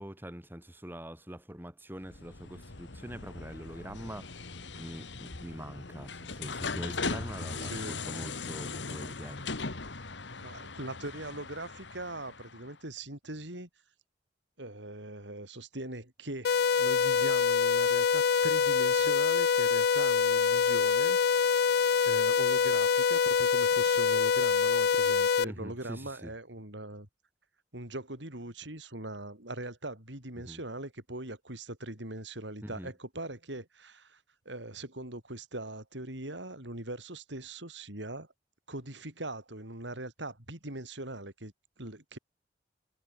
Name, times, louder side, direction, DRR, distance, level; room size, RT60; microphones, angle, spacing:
voice 1, 0.0-4.3 4.8-9.4 25.4-26.3 30.4-30.6 32.6-32.9, equal, 10° right, 3.3 m, -44 dB
tramdoors opening, 2.0-12.7, left 4 dB, 80° left, 2.0 m, -39 dB
voice 2, 7.6-8.0 10.4-13.7 14.6-21.2 21.6-21.7 22.0-27.1 27.7-34.2 34.5-38.3 38.7-42.2, right 2 dB, 80° right, 7.1 m, -41 dB
sound 1, 16.4-25.4, left 6 dB, 60° left, 0.4 m, -25 dB
head